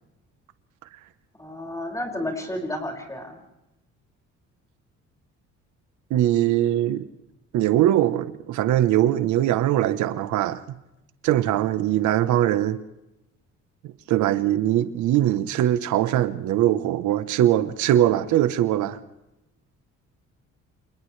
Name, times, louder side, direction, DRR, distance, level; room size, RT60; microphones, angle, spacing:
voice 1, 1.4-3.4, left 1 dB, 10° left, 5.9 m, -31 dB
voice 2, 6.1-7.1 7.5-10.6 11.2-12.8 13.8-19.0, right 12 dB, 85° right, 1.1 m, -21 dB
29.5 x 28.0 x 3.3 m
cardioid pair, 115°, 29 cm